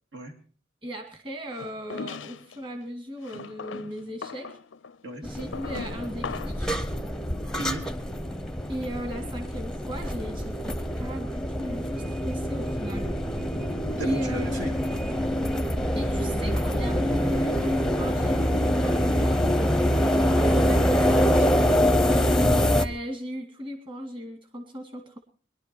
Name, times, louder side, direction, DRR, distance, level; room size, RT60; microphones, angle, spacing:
voice 1, 0.8-4.6 5.2-6.8 8.7-13.1 14.0-14.4 15.9-19.4 20.4-20.9 22.7-25.2, equal, 25° right, 4 dB, 2.3 m, -36 dB
sound 1, 1.6-2.6 3.2-6.7, left 5 dB, 90° left, 0.6 m, -39 dB
sound 2, 5.2-22.9, equal, 5° left, 0.8 m, -25 dB
voice 2, 14.0-14.9 20.2-21.7, right 2 dB, 70° right, 3 dB, 2.9 m, -36 dB
22.0 x 11.5 x 4.6 m, 0.42 s
head